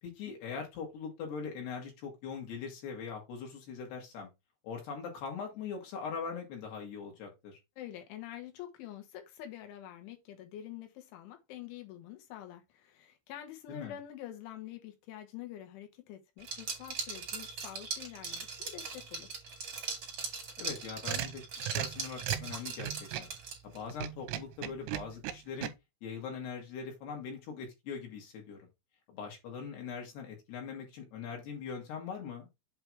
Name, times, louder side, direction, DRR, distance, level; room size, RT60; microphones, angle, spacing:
voice 1, 0.0-4.3 4.6-7.6 13.7-14.0 20.6-23.3 23.6-25.7 26.0-28.6 29.1-32.5, left 6 dB, 65° left, 3.8 m, -41 dB
voice 2, 7.8-19.4, left 11 dB, 85° left, 3.8 m, -47 dB
Liquid, 16.4-23.8, right 5 dB, 45° right, 1.7 m, -40 dB
sound 1, 20.7-23.4 23.9-25.7, right 13 dB, 85° right, 3.0 m, -37 dB
7.9 x 3.4 x 4.6 m
omnidirectional pair, 5.3 m